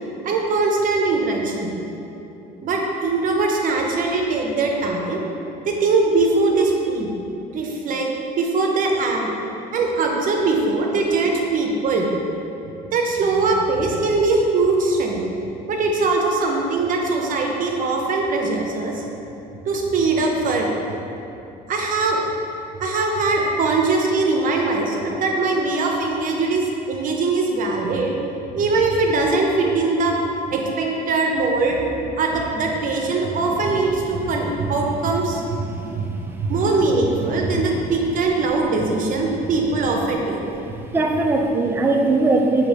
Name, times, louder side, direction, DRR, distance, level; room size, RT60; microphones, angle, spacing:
voice 1, 0.2-1.7 2.6-5.2 5.7-7.1 7.5-8.1 8.4-9.3 9.7-12.1 12.9-15.2 15.7-19.0 19.7-20.7 21.7-22.2 22.8-28.1 28.6-30.1 30.5-31.8 32.2-36.1 36.4-40.4, right 3 dB, 55° right, 1 dB, 0.6 m, -21 dB
voice 2, 35.7-36.3 40.9-42.7, right 2 dB, 15° right, 2 dB, 0.3 m, -20 dB
5.2 x 2.8 x 3.3 m, 2.9 s
cardioid pair, 110°, 17 cm